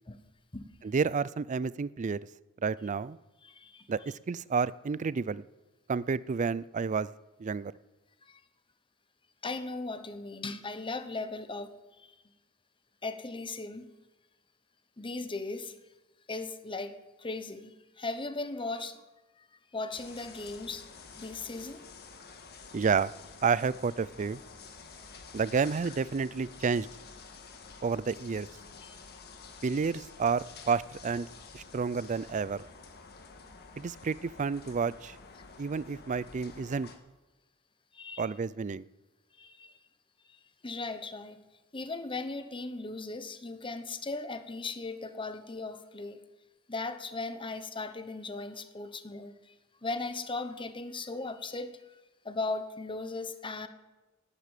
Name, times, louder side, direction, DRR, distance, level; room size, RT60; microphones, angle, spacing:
voice 1, 0.8-2.2 2.6-3.2 3.9-5.4 5.9-7.1 7.4-7.7 22.7-23.1 23.4-24.4 25.3-26.9 27.8-28.5 29.6-31.3 31.5-32.6 33.8-35.2 35.6-36.9 38.2-38.8, right 5 dB, 35° right, 20 dB, 0.4 m, -30 dB
voice 2, 3.4-3.9 8.2-8.4 9.4-12.1 13.0-13.9 15.0-15.8 16.3-19.0 19.4-19.5 19.7-20.9 21.2-21.9 28.8-29.0 33.2-33.3 37.9-38.3 39.4-39.7 40.3-41.4 41.7-46.2 46.7-49.5 49.8-52.0 52.2-53.7, left 3 dB, 25° left, 10 dB, 1.0 m, -38 dB
sound 1, 19.9-37.0, left 4 dB, 50° left, 1.6 m, -50 dB
11.5 x 9.9 x 9.1 m, 1.1 s
head